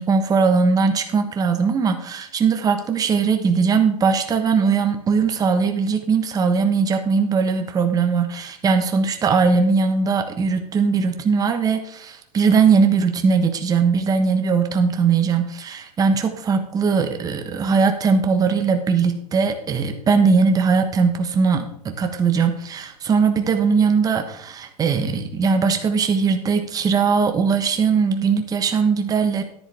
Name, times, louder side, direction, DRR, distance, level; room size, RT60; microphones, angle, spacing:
voice 1, 0.0-29.4, right 5 dB, 15° right, 6 dB, 1.1 m, -20 dB
10.5 x 9.8 x 3.5 m, 0.70 s
hypercardioid pair, 135°, 21 cm